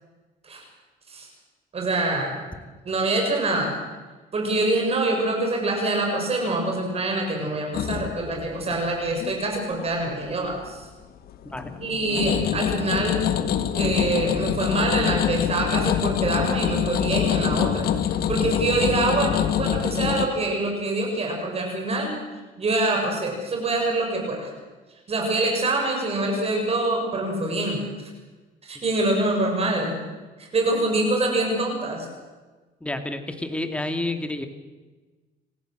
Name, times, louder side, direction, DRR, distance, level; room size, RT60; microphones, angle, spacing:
voice 1, 1.7-2.4 2.8-3.7 4.3-10.8 11.8-13.3 13.7-17.9 18.3-22.1 22.6-24.5 25.1-27.8 28.6-29.9 30.4-32.1, right 2 dB, 35° right, 1 dB, 7.3 m, -25 dB
sound 1, 7.7-10.0 10.3-10.8 11.3-20.3, left 9 dB, 65° left, 1.9 m, -25 dB
voice 2, 32.8-34.5, left 2 dB, 5° left, 6 dB, 2.4 m, -29 dB
28.5 x 15.5 x 7.9 m, 1.3 s
cardioid pair, 110°, 17 cm